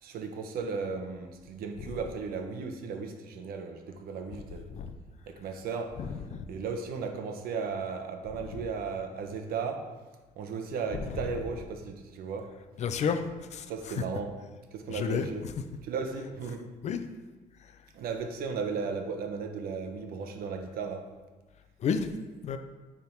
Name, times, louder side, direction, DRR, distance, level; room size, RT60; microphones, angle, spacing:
voice 1, 0.0-4.7 5.3-6.0 6.5-9.9 10.4-12.5 13.7-14.4 14.7-15.5 15.8-16.7 17.9-21.1, right 5 dB, 70° right, 5 dB, 0.9 m, -35 dB
voice 2, 6.0-6.4 8.5-8.6 11.0-11.3 12.8-13.2 13.5-14.0 14.9-15.3 16.8-17.0 21.8-22.1 22.4-22.6, left 6 dB, 45° left, 9 dB, 0.5 m, -31 dB
9.4 x 3.7 x 4.5 m, 1.2 s
cardioid pair, 145°, 16 cm